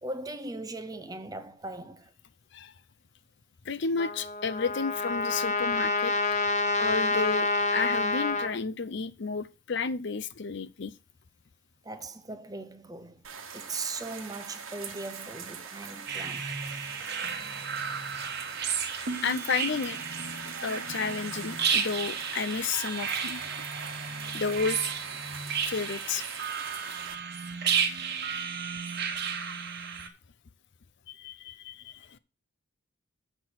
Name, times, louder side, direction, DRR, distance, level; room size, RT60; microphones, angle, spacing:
voice 1, 0.0-2.1 11.8-13.2 13.5-16.6, right 2 dB, 15° right, 0.6 m, -39 dB
voice 2, 3.6-6.1 6.8-10.9 19.2-20.0 20.6-23.4 24.3-24.9 25.6-26.2 31.1-32.2, left 5 dB, 55° left, 0.6 m, -32 dB
Trumpet, 4.0-8.5, left 3 dB, 35° left, 1.1 m, -28 dB
sound 1, 13.2-27.1, right 6 dB, 80° right, 1.4 m, -42 dB
sound 2, 16.1-30.1, right 6 dB, 50° right, 1.2 m, -33 dB
7.6 x 6.0 x 6.2 m
head